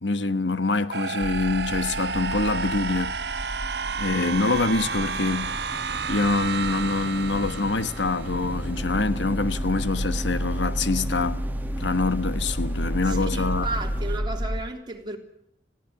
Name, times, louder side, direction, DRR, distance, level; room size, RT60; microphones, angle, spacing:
voice 1, 0.0-3.2 4.0-5.5 6.1-11.5 11.8-13.7, left 3 dB, 90° left, 1.3 m, -25 dB
sound 1, 0.9-8.8, right 5 dB, 65° right, 1.3 m, -31 dB
sound 2, 1.2-14.6, equal, 10° left, 1.0 m, -32 dB
sound 3, 4.1-14.2, right 1 dB, 10° right, 1.4 m, -39 dB
voice 2, 13.1-15.2, right 2 dB, 25° right, 3.4 m, -33 dB
21.0 x 15.5 x 9.6 m
head